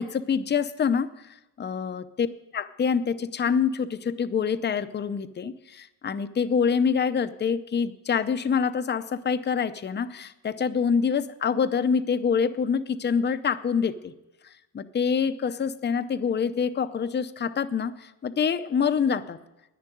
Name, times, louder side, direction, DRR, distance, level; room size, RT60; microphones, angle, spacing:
voice 1, 0.0-2.3 2.5-14.1 14.7-19.4, left 6 dB, 25° left, 12 dB, 0.6 m, -26 dB
10.5 x 10.0 x 9.1 m, 0.97 s
cardioid pair, 130°, 45 cm